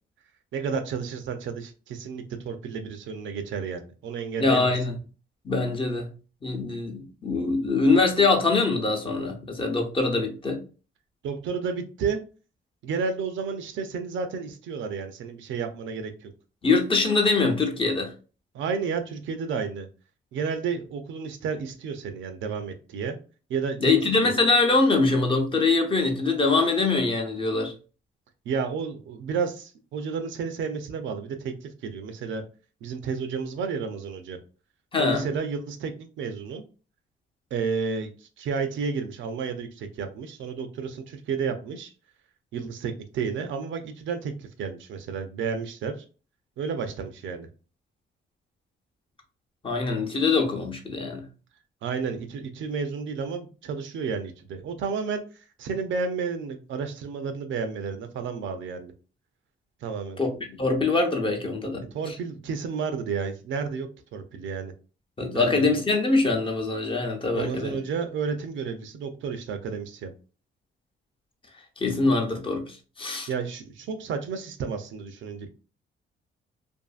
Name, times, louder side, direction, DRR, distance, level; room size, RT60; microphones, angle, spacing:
voice 1, 0.5-4.7 11.2-12.2 12.8-16.3 18.5-19.9 20.3-23.2 23.5-23.9 24.3-24.5 28.5-32.4 32.8-34.4 35.0-36.6 37.5-41.9 42.5-46.0 46.6-47.5 51.8-55.2 55.6-58.9 59.8-60.2 61.9-64.7 65.3-65.7 67.3-70.1 73.3-75.5, right 5 dB, 75° right, 8 dB, 0.5 m, -31 dB
voice 2, 4.4-5.0 5.4-6.1 6.4-10.6 16.6-18.1 23.8-27.7 34.9-35.2 49.6-51.2 60.2-60.3 60.6-62.1 65.2-67.8 71.8-73.3, left 3 dB, 25° left, 3 dB, 0.7 m, -23 dB
2.6 x 2.5 x 2.4 m, 0.35 s
cardioid pair, 90°, 20 cm